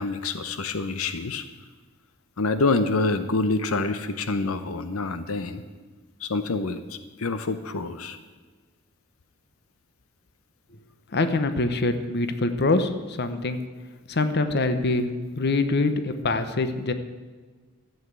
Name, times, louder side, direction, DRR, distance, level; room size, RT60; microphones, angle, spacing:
voice 1, 0.0-1.4 2.4-5.6 6.2-8.2, left 3 dB, 90° left, 11 dB, 0.8 m, -27 dB
voice 2, 11.1-13.6 14.1-15.1 15.3-16.9, left 2 dB, 55° left, 10 dB, 1.0 m, -24 dB
13.0 x 8.2 x 8.2 m, 1.4 s
head